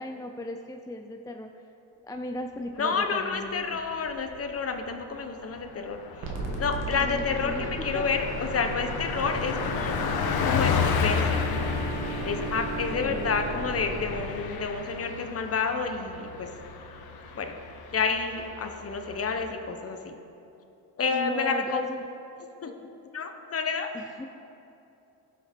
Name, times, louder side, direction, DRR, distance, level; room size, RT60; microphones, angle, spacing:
voice 1, 0.0-1.5 2.0-3.8 7.0-8.0 13.0-13.3 21.1-22.1 22.7-22.9 23.9-24.2, left 1 dB, 10° left, 4 dB, 0.4 m, -37 dB
voice 2, 2.8-6.3 6.6-10.0 10.4-11.4 12.2-16.5 17.3-17.6 17.9-20.1 21.0-21.8 22.4-22.7 23.1-23.9, left 5 dB, 35° left, 6 dB, 1.0 m, -29 dB
Car passing by, 3.9-4.5 4.8-5.0 5.3-19.5, left 6 dB, 60° left, 1.1 m, -33 dB
sound 1, 6.2-14.2, right 1 dB, 90° right, 1.6 m, -35 dB
Wind instrument woodwind instrument, 9.2-14.6, right 10 dB, 70° right, 0.8 m, -40 dB
17.0 x 5.8 x 4.4 m, 2.8 s
cardioid pair, 95°, 43 cm